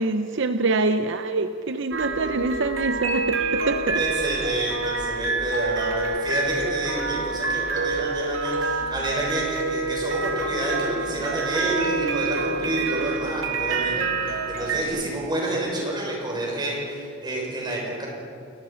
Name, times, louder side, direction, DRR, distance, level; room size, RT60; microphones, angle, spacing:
voice 1, 0.0-4.0 14.9-15.0 15.8-15.9, right 3 dB, 65° right, 9 dB, 0.7 m, -25 dB
sound 1, 1.9-14.8, right 3 dB, 90° right, 2.6 m, -27 dB
voice 2, 3.9-18.1, right 1 dB, 20° right, -3 dB, 6.5 m, -29 dB
29.5 x 19.0 x 5.8 m, 2.5 s
head